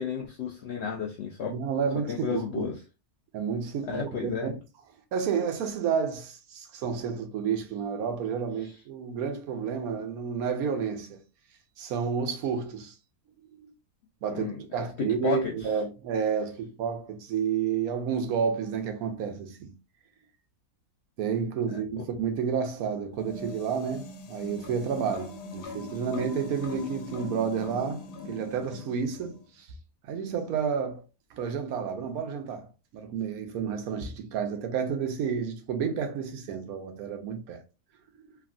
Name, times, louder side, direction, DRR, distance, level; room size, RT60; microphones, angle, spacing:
voice 1, 0.0-1.5 2.1-2.7 3.9-4.5 14.3-14.8 15.2-15.5 21.7-22.1, left 6 dB, 75° left, 0.6 m, -32 dB
voice 2, 1.5-2.7 3.3-4.5 5.1-11.2 11.8-12.9 13.5-13.7 14.2-19.7 21.2-29.7 30.0-31.0 31.3-37.6, right 7 dB, 75° right, 1.0 m, -30 dB
sound 1, 23.1-29.5, left 3 dB, 90° left, 1.2 m, -41 dB
3.3 x 2.3 x 2.4 m
omnidirectional pair, 1.6 m